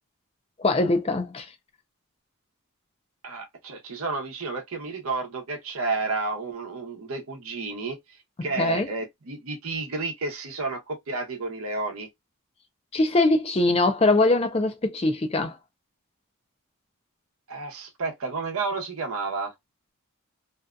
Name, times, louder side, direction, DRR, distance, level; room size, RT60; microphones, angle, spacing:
voice 1, 0.6-1.5 8.6-8.9 12.9-15.5, left 2 dB, 25° left, 0.4 m, -22 dB
voice 2, 3.2-8.0 8.4-12.1 17.5-19.5, right 3 dB, 70° right, 0.8 m, -31 dB
2.7 x 2.4 x 2.2 m
head